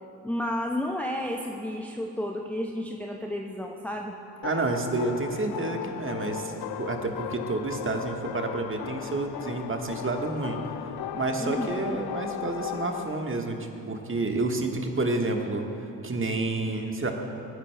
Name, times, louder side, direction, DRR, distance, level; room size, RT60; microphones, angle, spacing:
voice 1, 0.2-4.1 11.4-12.0, left 1 dB, 5° left, 1 dB, 0.7 m, -31 dB
sound 1, 4.4-13.2, left 11 dB, 50° left, 0.5 m, -36 dB
voice 2, 4.4-6.5 6.8-10.6 11.1-15.6 16.0-17.1, right 2 dB, 25° right, 3 dB, 1.4 m, -29 dB
23.0 x 9.8 x 2.2 m, 2.7 s
hypercardioid pair, 45°, 50 cm